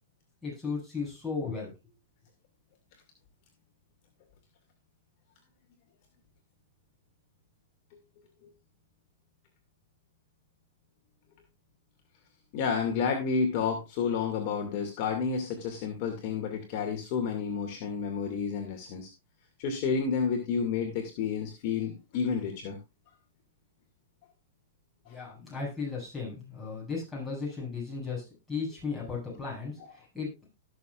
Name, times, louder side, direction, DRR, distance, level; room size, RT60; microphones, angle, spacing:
voice 1, 0.4-1.7 25.1-30.3, left 4 dB, 5° left, -6 dB, 7.8 m, -35 dB
voice 2, 12.5-19.1 19.6-22.8 25.1-25.2, left 6 dB, 45° left, 2 dB, 2.3 m, -30 dB
19.0 x 6.8 x 2.5 m, 0.25 s
hypercardioid pair, 135°, 0 cm